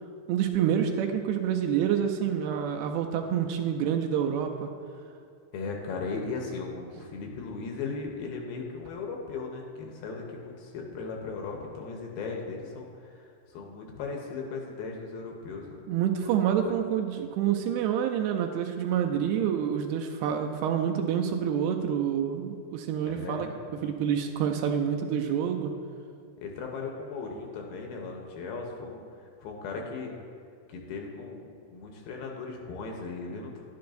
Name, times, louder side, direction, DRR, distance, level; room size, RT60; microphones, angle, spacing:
voice 1, 0.3-4.7 15.9-23.5 23.8-25.7, right 8 dB, 80° right, 4 dB, 2.4 m, -27 dB
voice 2, 5.5-15.8 16.2-16.3 16.6-16.7 19.2-19.3 23.1-23.5 26.4-30.1 30.7-33.5, left 4 dB, 75° left, 1 dB, 2.5 m, -37 dB
11.0 x 10.0 x 2.6 m, 2.4 s
omnidirectional pair, 4.8 m